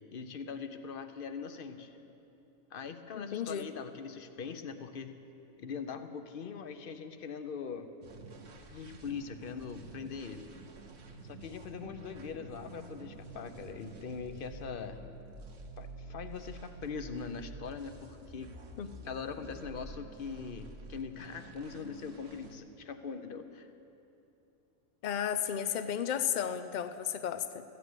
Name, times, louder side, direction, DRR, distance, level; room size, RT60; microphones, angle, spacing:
voice 1, 0.1-2.0 2.7-5.2 5.6-7.9 8.7-10.5 11.2-15.0 15.8-18.5 19.0-23.7, left 6 dB, 50° left, 9 dB, 0.8 m, -42 dB
voice 2, 3.1-3.7 18.8-18.9 25.0-27.6, left 9 dB, 75° left, 10 dB, 0.4 m, -33 dB
sound 1, 8.0-22.6, right 3 dB, 55° right, 1.2 m, -49 dB
14.0 x 9.4 x 8.0 m, 2.9 s
omnidirectional pair, 1.4 m